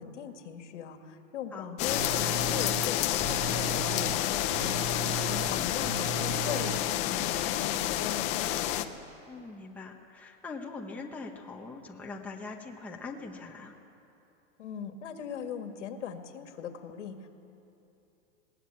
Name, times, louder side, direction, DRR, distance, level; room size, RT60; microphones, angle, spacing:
voice 1, 0.0-8.9 14.6-17.3, left 8 dB, 85° left, 6 dB, 2.1 m, -40 dB
sound 1, 1.8-8.8, left 13 dB, 20° left, 0.5 m, -29 dB
Telephone, 1.8-6.8, right 4 dB, 55° right, 1.6 m, -37 dB
voice 2, 9.3-13.7, left 3 dB, 5° left, 0 dB, 1.0 m, -42 dB
20.0 x 18.0 x 8.4 m, 2.8 s
supercardioid pair, 165°, 35 cm